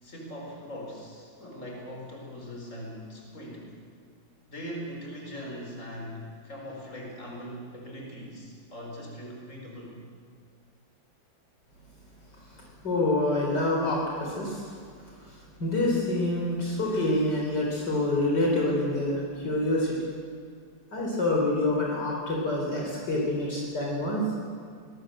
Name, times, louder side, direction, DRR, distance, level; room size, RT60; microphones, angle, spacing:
voice 1, 0.0-3.7 4.5-10.0, equal, 40° left, 0 dB, 5.0 m, -41 dB
voice 2, 12.8-14.7 15.2-15.3 15.6-20.0 20.9-24.2, left 2 dB, 60° left, -2 dB, 4.5 m, -27 dB
24.5 x 20.0 x 7.8 m, 2.2 s
omnidirectional pair, 2.1 m